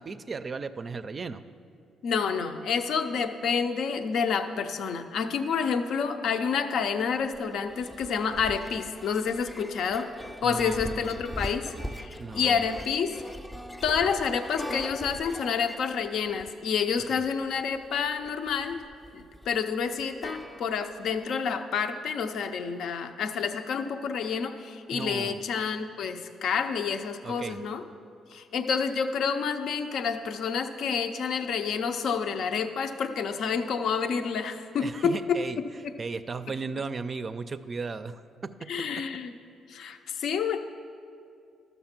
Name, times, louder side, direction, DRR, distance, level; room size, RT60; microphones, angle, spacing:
voice 1, 0.0-1.4 10.4-11.1 12.2-12.7 17.1-17.2 24.9-25.5 27.2-27.6 34.8-35.6 36.0-38.7, right 4 dB, 40° right, 10 dB, 0.4 m, -36 dB
voice 2, 2.0-10.1 10.4-13.2 13.8-18.8 19.1-27.8 28.3-35.9 38.7-39.3 39.7-40.6, left 6 dB, 70° left, 7 dB, 0.6 m, -29 dB
sound 1, 7.2-21.1, equal, 10° left, 0.5 m, -41 dB
12.5 x 6.9 x 5.9 m, 2.4 s
cardioid pair, 90°, 0 cm